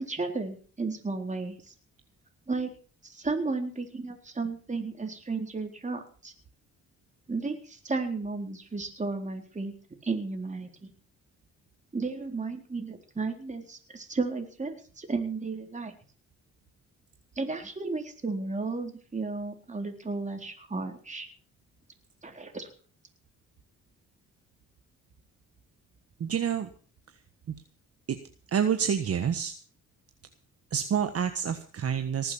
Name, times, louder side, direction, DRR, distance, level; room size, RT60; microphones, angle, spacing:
voice 1, 0.0-1.7 2.5-2.7 3.0-6.3 7.3-9.7 10.0-10.9 11.9-15.9 17.4-21.3 22.2-22.7, right 3 dB, 25° right, 4 dB, 4.0 m, -33 dB
voice 2, 26.2-26.7 28.1-28.2 28.5-29.5 30.7-32.3, right 8 dB, 50° right, 8 dB, 1.5 m, -28 dB
19.5 x 7.9 x 7.1 m, 0.41 s
cardioid pair, 90°, 30 cm